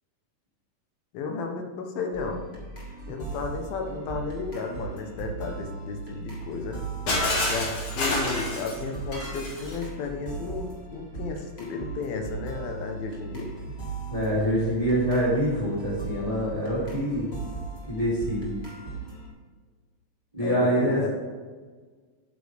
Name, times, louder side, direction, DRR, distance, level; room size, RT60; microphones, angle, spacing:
voice 1, 1.1-2.5 3.1-6.8 7.4-13.5 20.4-21.1, left 4 dB, 80° left, 3 dB, 2.9 m, -33 dB
sound 1, 2.1-19.3, right 4 dB, 30° left, 1.2 m, -38 dB
Shatter, 7.1-9.8, left 2 dB, 45° left, 2.0 m, -28 dB
voice 2, 14.1-17.3 17.9-18.5 20.3-21.1, equal, 10° right, -6 dB, 1.9 m, -25 dB
10.0 x 8.3 x 3.5 m, 1.5 s
omnidirectional pair, 4.2 m